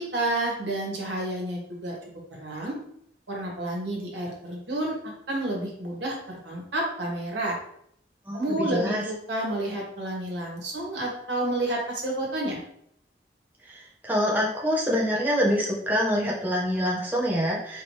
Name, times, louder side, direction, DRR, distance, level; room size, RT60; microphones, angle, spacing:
voice 1, 0.0-2.0 2.4-2.7 3.3-4.9 5.3-7.6 8.3-12.6, right 1 dB, 90° right, -2 dB, 1.4 m, -30 dB
voice 2, 8.3-9.0 13.6-17.8, equal, 10° right, -4 dB, 0.6 m, -26 dB
4.4 x 2.8 x 3.2 m, 0.70 s
head